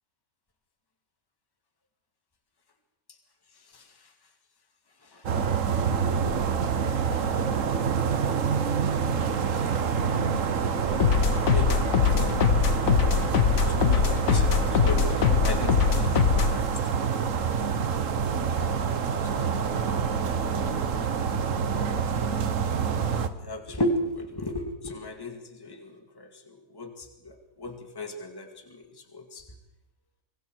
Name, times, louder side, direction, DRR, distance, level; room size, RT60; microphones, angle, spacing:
sound 1, 5.2-23.3, right 6 dB, 55° right, 1.4 m, -27 dB
voice 1, 10.9-12.6 13.7-16.8 19.2-20.1 20.4-20.5 23.4-28.8 29.1-29.4, left 1 dB, 15° left, 4 dB, 2.1 m, -36 dB
sound 2, 11.0-16.6, left 7 dB, 65° left, 1.3 m, -23 dB
25.0 x 23.5 x 4.7 m, 0.94 s
omnidirectional pair, 1.6 m